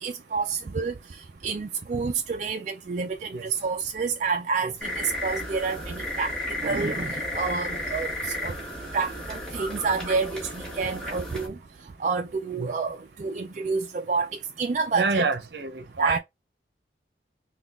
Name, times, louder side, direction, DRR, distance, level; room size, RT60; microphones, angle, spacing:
voice 1, 0.0-8.6 8.9-11.6 12.0-15.2 16.0-16.2, right 4 dB, 40° right, 0.3 m, -29 dB
sound 1, 4.8-11.5, left 1 dB, 5° left, 1.4 m, -33 dB
voice 2, 14.9-16.2, right 4 dB, 70° right, 0.8 m, -27 dB
3.9 x 2.3 x 3.6 m
head